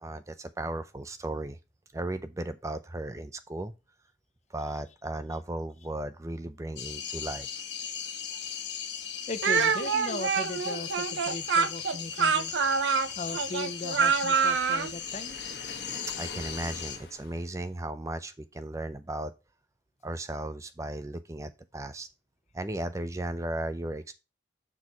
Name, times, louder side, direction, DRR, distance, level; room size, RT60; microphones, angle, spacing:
voice 1, 0.0-1.6 1.9-3.7 4.5-7.5 16.2-19.3 20.0-22.1 22.5-24.1, right 1 dB, 15° right, 0.4 m, -36 dB
sound 1, 6.8-17.0, left 8 dB, 75° left, 1.2 m, -38 dB
voice 2, 9.3-12.5 13.2-15.4, left 2 dB, 40° left, 0.6 m, -38 dB
Speech, 9.4-14.9, right 5 dB, 90° right, 0.6 m, -26 dB
Waves surf, 14.3-17.8, left 3 dB, 55° left, 1.3 m, -46 dB
6.2 x 4.6 x 5.3 m
head